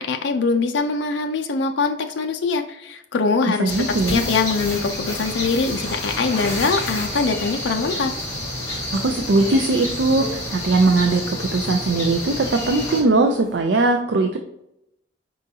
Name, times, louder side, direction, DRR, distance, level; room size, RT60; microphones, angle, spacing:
voice 1, 0.0-8.1, left 4 dB, 70° left, 5 dB, 0.4 m, -23 dB
voice 2, 3.6-4.2 9.0-14.4, right 3 dB, 65° right, 4 dB, 0.5 m, -20 dB
sound 1, 3.7-13.0, left 1 dB, 15° left, 1.5 m, -29 dB
sound 2, 7.0-13.6, right 1 dB, 85° right, 1.2 m, -40 dB
4.9 x 3.8 x 2.7 m, 0.81 s
head